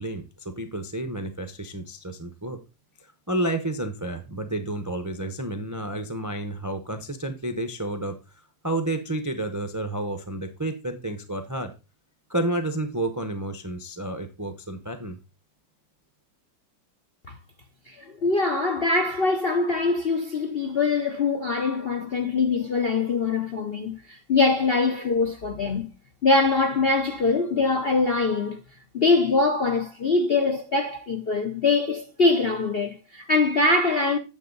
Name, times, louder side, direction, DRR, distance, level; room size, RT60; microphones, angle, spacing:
voice 1, 0.0-2.6 3.3-8.2 8.6-11.7 12.3-15.2, right 1 dB, 25° right, 0.4 m, -30 dB
voice 2, 17.9-25.9 26.2-28.6 28.9-34.2, left 3 dB, 55° left, 0.6 m, -23 dB
9.4 x 7.6 x 3.9 m
omnidirectional pair, 2.1 m